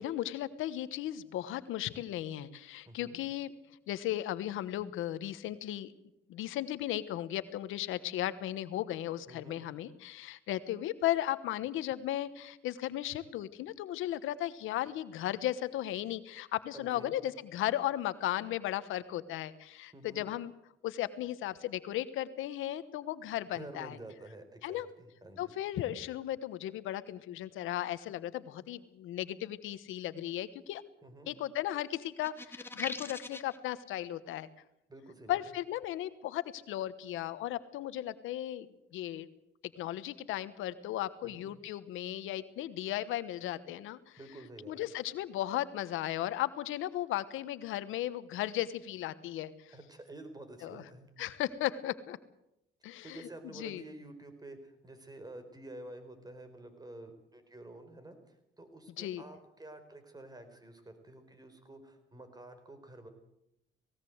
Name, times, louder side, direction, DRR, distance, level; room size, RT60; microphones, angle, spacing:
voice 1, 0.0-3.5 3.9-5.9 6.3-20.5 20.8-24.0 24.6-24.9 25.4-30.8 31.3-34.5 35.3-39.3 39.8-44.2 44.7-49.5 50.6-50.8 51.2-52.2 52.8-53.2 53.5-53.8 59.0-59.2, left 13 dB, 90° left, 14 dB, 1.2 m, -36 dB
voice 2, 2.9-3.2 9.3-9.6 16.7-17.2 19.9-20.3 23.5-25.5 31.0-31.3 34.9-35.4 41.2-41.5 44.2-44.9 49.7-51.1 53.0-63.1, right 2 dB, 20° right, 8 dB, 4.4 m, -50 dB
sound 1, 32.2-33.6, left 2 dB, 10° left, 1.8 m, -41 dB
19.0 x 18.0 x 8.0 m, 0.83 s
cardioid pair, 90°, 20 cm